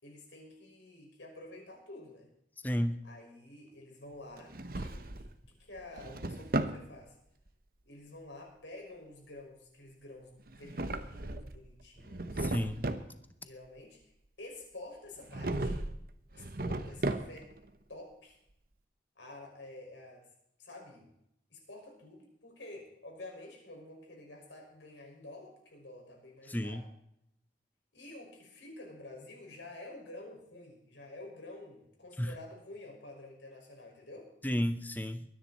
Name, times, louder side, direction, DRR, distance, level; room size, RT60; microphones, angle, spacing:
voice 1, 0.0-2.3 3.0-7.2 7.8-12.5 13.4-14.0 14.4-15.8 16.3-17.6 17.9-18.4 19.2-20.3 20.6-21.1 21.5-26.9 27.9-34.3, left 2 dB, 90° left, 0 dB, 5.7 m, -49 dB
voice 2, 2.6-3.0 12.4-12.8 26.5-26.8 32.2-32.3 34.4-35.2, equal, 10° left, 10 dB, 0.7 m, -32 dB
Drawer open or close, 4.4-5.3 5.8-6.8 10.5-11.6 12.0-13.1 15.3-16.0 16.3-17.6, right 2 dB, 50° right, 1.0 m, -35 dB
23.0 x 10.0 x 4.3 m, 0.75 s
head